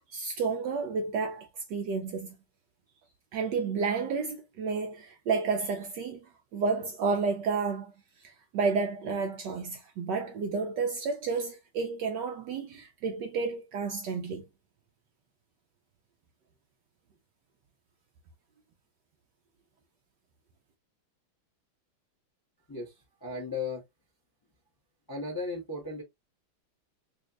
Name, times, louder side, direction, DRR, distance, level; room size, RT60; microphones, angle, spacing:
voice 1, 0.0-2.4 3.3-14.5, right 4 dB, 75° right, 1.0 m, -31 dB
voice 2, 22.7-23.8 25.1-26.0, left 3 dB, 20° left, 0.5 m, -36 dB
4.1 x 2.6 x 2.4 m
omnidirectional pair, 2.3 m